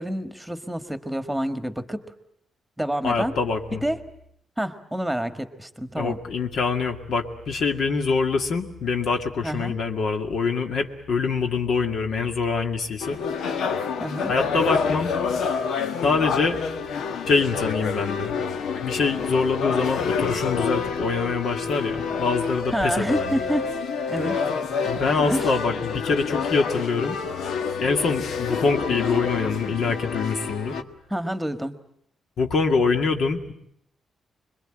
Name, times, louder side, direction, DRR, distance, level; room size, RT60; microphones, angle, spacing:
voice 1, 0.0-2.0 2.8-3.3 3.7-4.0 4.6-6.2 9.4-9.8 14.0-14.3 22.7-23.7 24.1-24.4 25.3-25.6 31.1-31.8, equal, 5° right, 9 dB, 1.7 m, -28 dB
voice 2, 3.0-3.8 6.0-13.2 14.3-15.1 16.0-16.6 17.3-18.4 18.8-23.4 24.9-27.2 27.8-30.8 32.4-33.5, left 4 dB, 65° left, 5 dB, 2.2 m, -24 dB
sound 1, 13.0-30.8, left 5 dB, 80° left, 1.4 m, -28 dB
25.5 x 22.5 x 9.0 m, 0.71 s
cardioid pair, 125°, 0 cm